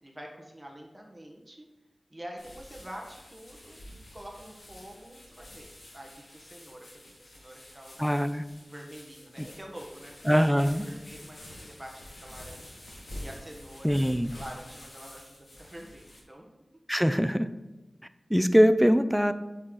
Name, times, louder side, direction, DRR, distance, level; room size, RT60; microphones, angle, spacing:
voice 1, 0.0-1.7 2.1-5.7 5.9-8.0 8.6-10.1 10.4-12.8 13.2-14.0 14.3-16.5, equal, 20° right, 0 dB, 1.5 m, -46 dB
sound 1, 2.4-16.2, left 1 dB, 80° left, 2.6 m, -48 dB
voice 2, 8.0-8.4 9.4-9.5 10.2-10.8 13.8-14.3 16.9-17.5 18.3-19.3, equal, ahead, 11 dB, 0.5 m, -22 dB
8.4 x 6.4 x 4.0 m, 1.1 s
wide cardioid pair, 65°, 0 cm